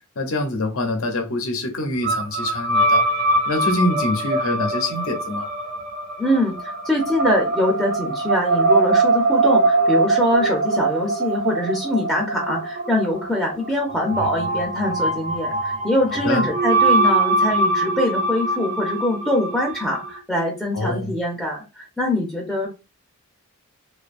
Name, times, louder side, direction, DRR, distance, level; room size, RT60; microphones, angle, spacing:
voice 1, 0.2-3.1 3.5-5.5 16.1-16.5 20.7-21.1, left 2 dB, 70° left, 0.6 m, -25 dB
sound 1, 2.0-20.2, right 2 dB, 55° right, 0.7 m, -22 dB
voice 2, 6.2-22.7, left 1 dB, 5° left, 0.4 m, -23 dB
2.6 x 2.3 x 2.4 m
head